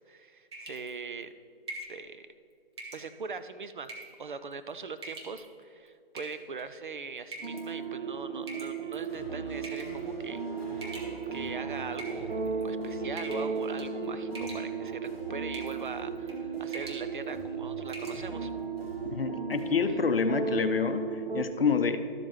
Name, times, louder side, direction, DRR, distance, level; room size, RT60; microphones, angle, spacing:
voice 1, 0.0-1.3 1.9-2.3 2.9-10.4 10.7-11.0 11.3-12.3 12.6-18.5, right 4 dB, 55° right, 11 dB, 0.5 m, -41 dB
sound 1, 0.5-0.9 1.7-2.0 2.8-3.1 3.8-4.2 5.0-5.4 6.2-6.6 7.3-7.6 8.5-9.1 9.6-10.0 10.8-11.5 11.9-12.6 13.2-13.5 13.8-14.0 14.3-14.9 15.5-15.8 16.2-16.4 16.7-17.0 17.4-17.5 17.9-18.2, right 2 dB, 25° right, 1.0 m, -43 dB
sound 2, 7.4-21.4, right 5 dB, 90° right, 1.2 m, -35 dB
sound 3, 8.9-19.9, equal, 10° left, 1.3 m, -46 dB
voice 2, 19.0-22.0, left 5 dB, 70° left, 10 dB, 0.7 m, -27 dB
12.5 x 7.4 x 3.1 m, 2.4 s
figure-of-eight pair, 150°, 30 cm